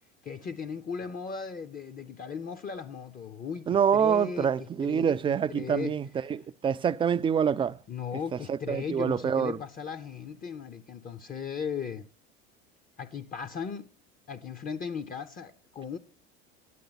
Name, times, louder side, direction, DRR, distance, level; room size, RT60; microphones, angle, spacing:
voice 1, 0.2-5.2 5.5-6.0 7.9-12.1 13.0-13.9 14.3-16.0, left 6 dB, 25° left, 0.6 m, -37 dB
voice 2, 3.7-7.8 8.3-9.6, right 7 dB, 15° right, 0.3 m, -26 dB
9.2 x 8.3 x 4.0 m
supercardioid pair, 100°, 32 cm